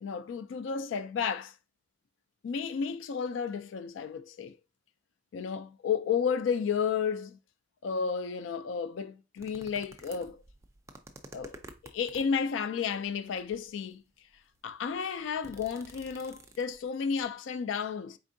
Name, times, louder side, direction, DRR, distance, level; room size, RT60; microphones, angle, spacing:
voice 1, 0.0-1.5 2.4-4.6 5.3-7.4 7.8-10.4 11.3-14.0 14.6-18.2, left 6 dB, 80° left, 0.3 m, -32 dB
sound 1, 9.4-12.4 13.2-13.8 14.4-14.5 14.7-16.9 17.2-17.3, right 2 dB, 15° right, 0.3 m, -51 dB
4.3 x 3.6 x 2.5 m
head